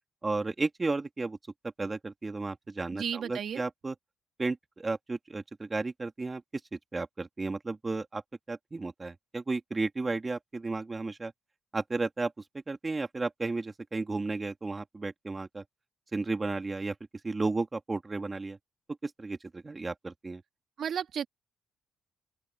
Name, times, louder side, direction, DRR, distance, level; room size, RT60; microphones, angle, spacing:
voice 1, 0.2-1.4 1.8-4.0 4.4-6.4 6.7-8.2 8.5-11.3 11.7-12.3 12.7-15.6 16.1-16.9 17.2-18.6 19.0-20.4, right 3 dB, 25° right, 2.7 m, -33 dB
voice 2, 2.9-3.6 20.8-21.3, right 8 dB, 60° right, 2.1 m, -33 dB
open air
cardioid pair, 90°, 0 cm